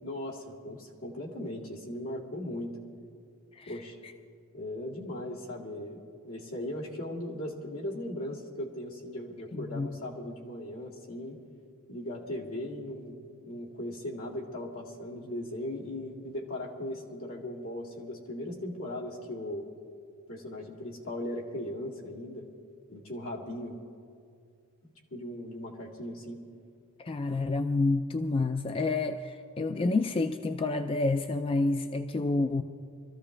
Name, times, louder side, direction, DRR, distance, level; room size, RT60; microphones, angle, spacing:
voice 1, 0.0-2.8 3.7-4.0 4.5-11.4 11.9-19.7 20.3-22.5 22.9-23.8 25.1-26.4, left 1 dB, 70° left, -2 dB, 2.3 m, -38 dB
voice 2, 9.5-9.9 27.0-32.6, left 3 dB, 25° left, 8 dB, 0.4 m, -29 dB
23.5 x 14.0 x 3.3 m, 2.3 s
head